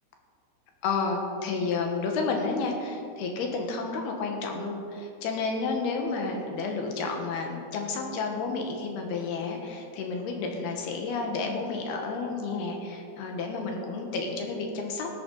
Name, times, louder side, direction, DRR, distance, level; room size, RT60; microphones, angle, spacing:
voice 1, 0.8-15.2, left 4 dB, 65° left, 2 dB, 2.8 m, -31 dB
17.0 x 13.0 x 4.0 m, 2.6 s
omnidirectional pair, 5.5 m